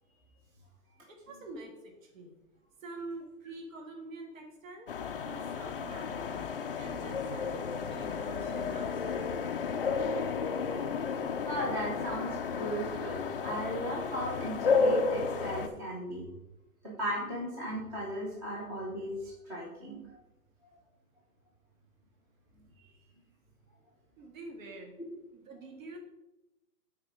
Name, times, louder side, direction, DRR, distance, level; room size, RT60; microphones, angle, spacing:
voice 1, 1.1-2.3 2.8-4.9 5.3-6.4 6.8-9.1 24.2-25.0 25.3-26.0, right 3 dB, 55° right, 2 dB, 2.0 m, -46 dB
sound 1, 4.9-15.7, left 5 dB, 40° left, 0.5 m, -32 dB
voice 2, 11.4-16.3 16.8-20.2, equal, 5° right, -4 dB, 0.7 m, -36 dB
9.3 x 4.2 x 4.9 m, 0.94 s
hypercardioid pair, 155°, 47 cm